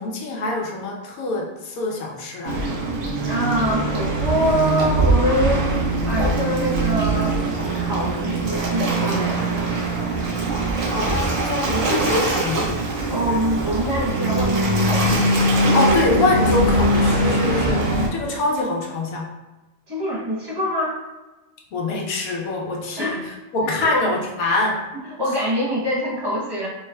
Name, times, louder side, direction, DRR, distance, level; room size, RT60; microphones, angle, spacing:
voice 1, 0.0-2.6 10.9-12.8 15.7-17.8 18.1-19.3 21.7-24.9, left 2 dB, 85° left, -1 dB, 1.2 m, -24 dB
Waves surf, 2.5-18.1, right 2 dB, 65° right, 1.1 m, -22 dB
voice 2, 3.3-7.4 7.7-9.5 13.1-15.4 19.9-21.0 23.0-23.2 23.8-24.1 24.4-24.6 25.0-26.7, equal, 20° right, -6 dB, 0.9 m, -24 dB
4.6 x 3.1 x 2.2 m, 1.1 s
omnidirectional pair, 1.5 m